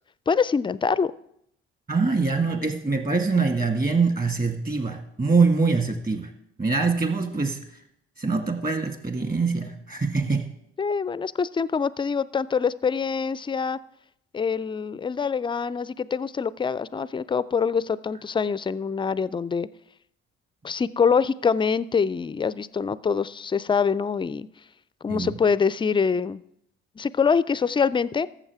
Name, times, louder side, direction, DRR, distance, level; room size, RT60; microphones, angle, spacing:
voice 1, 0.3-1.1 10.8-13.8 14.3-19.7 20.6-24.5 25.0-26.4 27.0-28.3, left 6 dB, 15° left, 18 dB, 0.3 m, -24 dB
voice 2, 1.9-6.3 6.6-7.6 8.2-10.5 25.1-25.4, right 4 dB, 30° right, 5 dB, 1.9 m, -24 dB
14.0 x 7.1 x 3.5 m, 0.75 s
hypercardioid pair, 60°, 30 cm